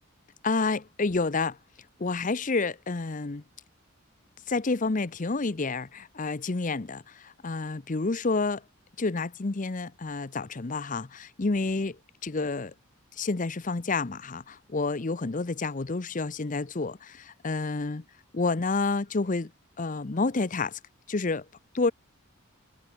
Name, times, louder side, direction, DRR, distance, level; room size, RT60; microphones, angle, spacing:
voice 1, 0.4-1.6 2.0-3.4 4.5-8.6 9.0-12.7 13.2-18.0 18.3-19.5 19.8-20.8 21.1-21.4 21.7-21.9, left 3 dB, 35° left, 0.7 m, -29 dB
head